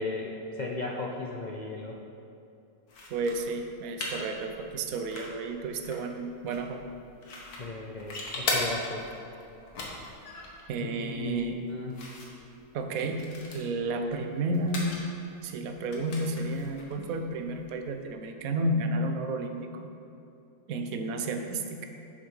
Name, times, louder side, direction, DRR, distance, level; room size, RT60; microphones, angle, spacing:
voice 1, 0.0-2.0 7.6-9.1 11.0-11.9, left 3 dB, 55° left, -1 dB, 0.5 m, -36 dB
sound 1, 2.9-18.0, left 2 dB, 75° left, 1.8 m, -40 dB
voice 2, 3.1-6.8 10.7-11.6 12.7-13.2 13.5-15.0 15.4-19.9 20.7-21.9, right 2 dB, 70° right, 5 dB, 1.1 m, -31 dB
7.5 x 7.1 x 5.4 m, 2.7 s
omnidirectional pair, 1.6 m